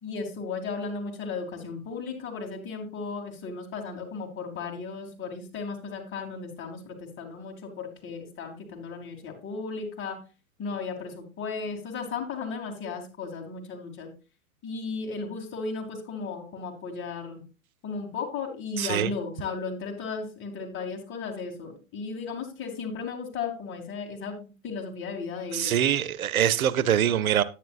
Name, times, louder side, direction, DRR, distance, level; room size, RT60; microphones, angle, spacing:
voice 1, 0.0-10.2 10.6-14.1 14.6-17.4 17.8-25.8, left 4 dB, 30° left, 2.5 m, -35 dB
voice 2, 18.8-19.1 25.5-27.4, right 10 dB, 80° right, 0.8 m, -24 dB
10.0 x 9.3 x 2.4 m
hypercardioid pair, 115°, 41 cm